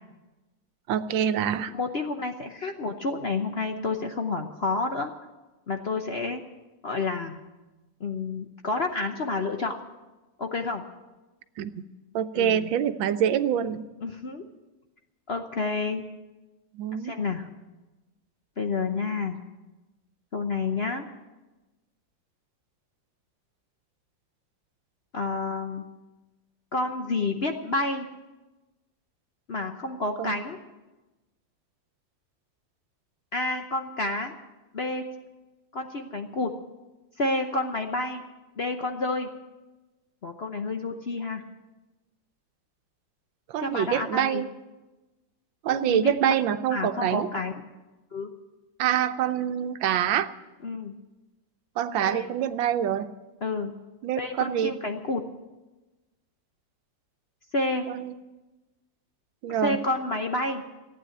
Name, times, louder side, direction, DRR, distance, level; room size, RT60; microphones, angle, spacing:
voice 1, 0.9-1.7 11.6-11.7 12.1-13.8 16.7-17.1 30.2-30.3 43.5-44.5 45.6-47.3 48.8-50.3 51.8-53.1 54.0-54.7 57.9-58.1 59.4-59.8, right 9 dB, 90° right, 11 dB, 1.5 m, -25 dB
voice 2, 1.7-5.1 5.7-6.4 6.8-7.4 8.0-9.8 10.4-10.8 12.3-12.7 14.0-14.5 15.3-16.0 17.0-17.5 18.6-19.4 20.3-21.0 25.1-25.8 26.7-28.1 29.5-30.6 33.3-34.3 34.7-35.1 35.7-36.5 37.2-38.2 38.6-39.3 40.2-41.4 43.6-44.4 45.7-46.1 46.7-47.5 48.1-48.3 50.6-50.9 52.0-52.3 53.4-53.7 54.1-55.2 57.5-57.9 59.6-60.6, left 3 dB, 50° left, 5 dB, 0.7 m, -29 dB
15.5 x 9.2 x 9.0 m, 1.1 s
omnidirectional pair, 2.0 m